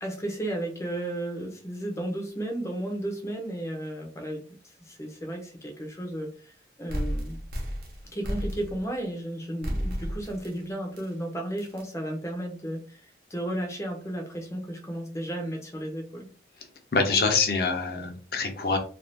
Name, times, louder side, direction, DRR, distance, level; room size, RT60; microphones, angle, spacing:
voice 1, 0.0-7.4 8.1-16.3, right 1 dB, 15° left, 2 dB, 0.7 m, -34 dB
sound 1, 6.9-9.0 9.6-10.6 11.0-11.1 11.6-11.8, equal, 55° right, 0.9 m, -32 dB
voice 2, 16.9-18.8, left 4 dB, 55° left, 4 dB, 0.7 m, -25 dB
2.6 x 2.4 x 3.3 m, 0.41 s
head